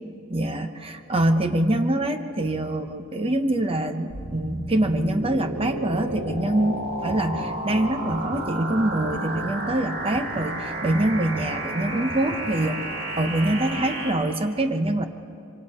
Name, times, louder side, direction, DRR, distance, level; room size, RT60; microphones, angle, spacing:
voice 1, 0.3-12.8 13.2-15.1, right 1 dB, 25° right, 7 dB, 0.8 m, -24 dB
sound 1, 4.1-14.1, right 1 dB, 65° right, 4.1 m, -32 dB
sound 2, 6.1-12.8, equal, 25° left, 5.2 m, -44 dB
25.5 x 25.0 x 4.3 m, 2.5 s
head